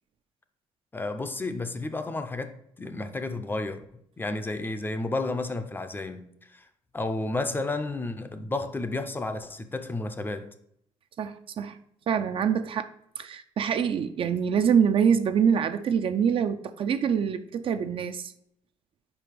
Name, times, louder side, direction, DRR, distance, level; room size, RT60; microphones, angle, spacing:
voice 1, 0.9-3.8 4.2-6.2 6.5-6.7 6.9-10.5, left 2 dB, 15° left, 0.5 m, -32 dB
voice 2, 11.2-11.7 12.1-12.9 13.2-18.3, right 7 dB, 45° right, 0.4 m, -25 dB
5.1 x 4.7 x 5.1 m
cardioid pair, 125°, 12 cm